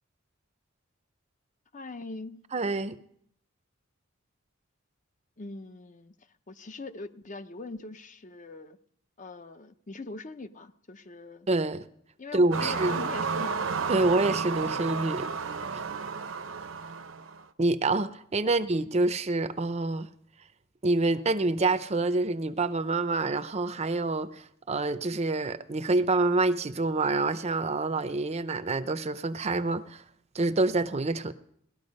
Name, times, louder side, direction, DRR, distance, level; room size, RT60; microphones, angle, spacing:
voice 1, 1.7-2.4 5.4-6.2 6.5-8.8 9.2-11.5 12.2-13.7 13.9-14.0 18.4-18.5, left 3 dB, 35° left, 0.7 m, -42 dB
voice 2, 2.5-3.0 11.5-11.9 12.3-13.0 13.9-15.3 17.6-20.1 20.8-30.0 30.3-31.3, right 2 dB, 30° right, 0.6 m, -27 dB
sound 1, 12.5-17.4, right 5 dB, 65° right, 0.8 m, -32 dB
19.0 x 12.5 x 5.3 m
head